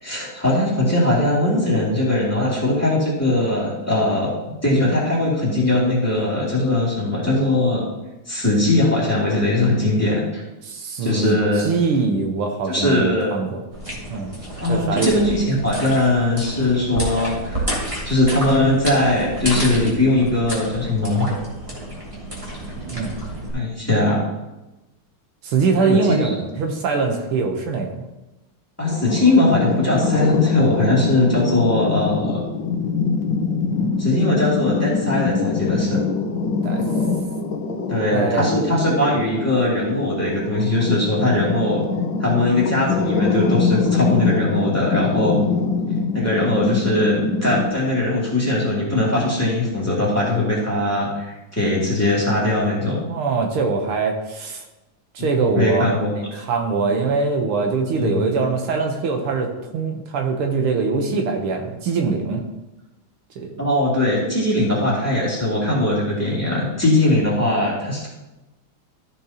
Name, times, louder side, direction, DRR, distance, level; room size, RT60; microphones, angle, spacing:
voice 1, 0.0-4.3 4.6-7.8 8.3-10.4 11.0-11.7 12.7-13.3 14.6-17.7 18.0-21.3 23.5-24.2 25.8-26.3 28.8-32.4 34.0-36.0 37.9-41.8 42.2-45.4 46.1-53.0 55.5-56.1 58.0-58.3 63.6-68.1, left 1 dB, 5° left, -6 dB, 2.6 m, -20 dB
voice 2, 10.6-13.6 14.1-14.4 14.7-15.1 22.9-23.1 25.4-28.1 36.6-36.8 38.1-38.6 53.0-54.6 55.2-62.4 63.4-63.5, right 4 dB, 80° right, 3 dB, 1.9 m, -23 dB
sound 1, 13.7-23.5, right 1 dB, 15° right, 2.4 m, -30 dB
sound 2, 28.8-47.7, left 4 dB, 65° left, 1.5 m, -24 dB
13.5 x 7.1 x 2.9 m, 1.0 s
omnidirectional pair, 2.4 m